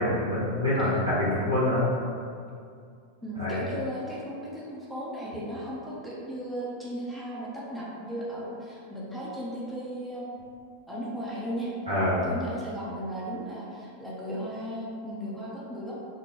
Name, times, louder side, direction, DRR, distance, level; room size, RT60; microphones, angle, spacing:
voice 1, 0.0-1.8 3.4-3.6 11.9-12.2, left 1 dB, 85° right, -11 dB, 1.1 m, -25 dB
voice 2, 0.8-1.1 3.2-10.3 10.9-11.7 12.2-15.9, equal, ahead, -8 dB, 0.5 m, -36 dB
2.4 x 2.1 x 3.0 m, 2.3 s
figure-of-eight pair, 90°, 0 cm